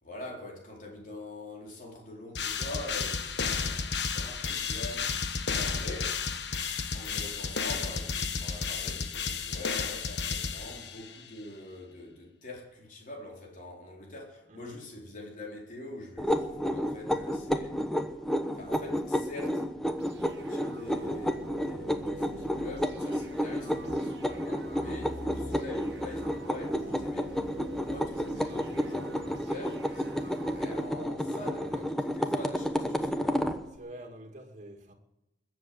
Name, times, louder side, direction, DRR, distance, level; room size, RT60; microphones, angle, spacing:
voice 1, 0.0-6.2 6.9-18.0 18.5-19.7 20.2-27.5 27.8-33.5, left 2 dB, 45° left, 4.1 m, -44 dB
sound 1, 2.3-11.2, left 5 dB, 70° left, 1.3 m, -32 dB
sound 2, 16.2-33.6, equal, ahead, 1.0 m, -31 dB
sound 3, 20.0-31.0, right 1 dB, 70° right, 1.6 m, -46 dB
voice 2, 31.3-31.9 33.7-34.9, right 1 dB, 45° right, 2.4 m, -47 dB
21.0 x 7.9 x 7.7 m
head